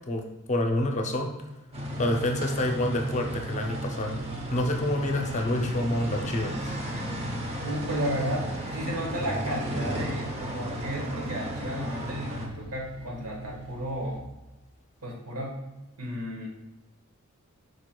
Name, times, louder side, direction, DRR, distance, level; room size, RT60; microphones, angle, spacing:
voice 1, 0.1-1.3 2.0-4.2 4.5-6.8, left 1 dB, 35° left, 3 dB, 0.5 m, -28 dB
sound 1, 1.7-12.5, right 1 dB, 30° right, 0.7 m, -34 dB
sound 2, 3.1-14.2, right 1 dB, 65° right, 0.9 m, -45 dB
voice 2, 7.6-14.2 15.0-15.6 16.0-16.5, equal, 90° right, -2 dB, 1.4 m, -33 dB
4.8 x 4.5 x 2.2 m, 1.0 s
head